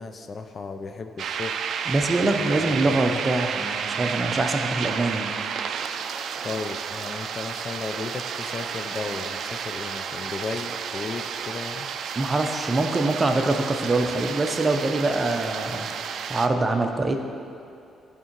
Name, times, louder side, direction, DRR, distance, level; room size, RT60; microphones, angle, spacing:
voice 1, 0.0-1.6 2.5-3.0 6.4-11.9, left 4 dB, 40° left, 7 dB, 0.4 m, -35 dB
sound 1, 1.2-16.5, right 7 dB, 65° right, 0.3 m, -31 dB
voice 2, 1.9-5.3 12.2-15.9 16.3-17.2, right 2 dB, 25° right, 5 dB, 0.6 m, -24 dB
11.0 x 3.7 x 4.5 m, 2.5 s
cardioid pair, 90°, 0 cm